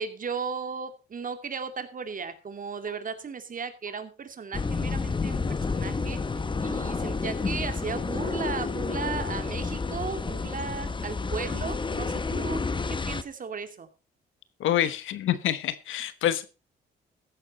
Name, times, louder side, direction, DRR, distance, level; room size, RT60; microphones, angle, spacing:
voice 1, 0.0-6.2 6.6-12.6 12.9-13.9, right 5 dB, 45° right, 2.4 m, -36 dB
sound 1, 2.9-3.0 3.9-4.0 4.9-5.0 5.9-6.0 6.9-7.0 7.9-8.0 8.9-9.0 9.9-10.0 10.9-11.0 11.9-12.0, left 5 dB, 40° left, 3.9 m, -48 dB
sound 2, 4.5-13.2, left 4 dB, 25° left, 1.0 m, -30 dB
voice 2, 14.6-16.5, left 11 dB, 80° left, 1.2 m, -27 dB
14.5 x 11.0 x 4.2 m
cardioid pair, 90°, 20 cm